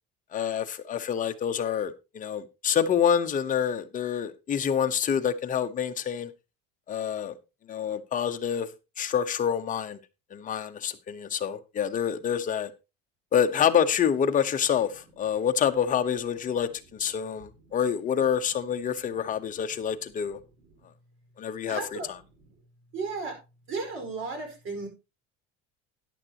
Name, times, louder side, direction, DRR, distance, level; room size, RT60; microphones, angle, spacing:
voice 1, 0.3-6.3 6.9-7.3 7.7-8.7 9.0-10.0 10.3-12.7 13.3-20.4 21.4-22.0, left 8 dB, 25° left, 1.0 m, -27 dB
voice 2, 21.7-22.4 22.9-23.4 23.7-24.9, right 4 dB, 40° right, 5.0 m, -34 dB
13.5 x 10.0 x 2.9 m
cardioid pair, 155°, 30 cm